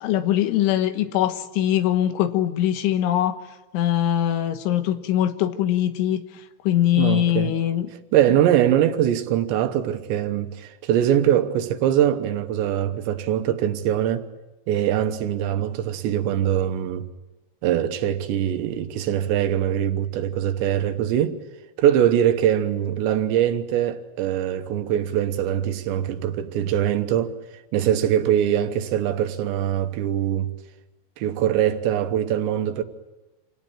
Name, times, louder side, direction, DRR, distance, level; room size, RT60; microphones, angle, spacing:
voice 1, 0.0-3.4 3.7-6.2 6.7-7.9, left 11 dB, 90° left, 3.7 m, -22 dB
voice 2, 7.0-7.5 8.1-14.3 14.7-17.1 17.6-21.4 21.8-27.4 27.7-30.5 31.2-32.8, right 10 dB, 75° right, 3.2 m, -22 dB
27.0 x 18.0 x 8.8 m
omnidirectional pair, 5.3 m